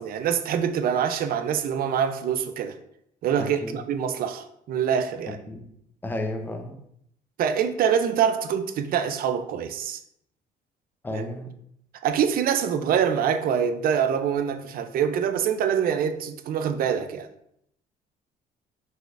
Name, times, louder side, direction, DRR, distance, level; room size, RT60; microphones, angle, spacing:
voice 1, 0.0-2.8 3.2-5.4 7.4-10.0 11.1-11.2 12.0-17.3, right 8 dB, 60° right, 9 dB, 0.5 m, -25 dB
voice 2, 3.4-3.8 5.3-5.7 6.0-6.8 11.0-11.5, left 1 dB, 10° left, 5 dB, 0.6 m, -33 dB
5.6 x 3.8 x 2.5 m, 0.74 s
cardioid pair, 110°, 17 cm